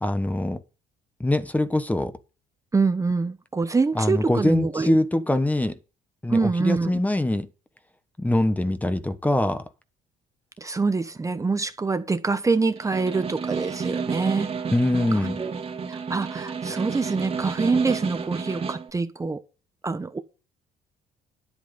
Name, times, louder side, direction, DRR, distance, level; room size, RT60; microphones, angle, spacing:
voice 1, 0.0-0.6 1.2-2.1 3.9-5.8 6.2-7.5 8.2-9.6 14.7-15.4, left 1 dB, 10° left, 1.2 m, -23 dB
voice 2, 2.7-5.0 6.3-6.9 10.6-14.5 15.4-15.5 15.9-19.4 19.8-20.2, right 4 dB, 20° right, 1.1 m, -25 dB
Snare drum, 12.8-18.9, right 5 dB, 35° right, 2.0 m, -31 dB
10.5 x 8.5 x 5.3 m
cardioid pair, 110°, 17 cm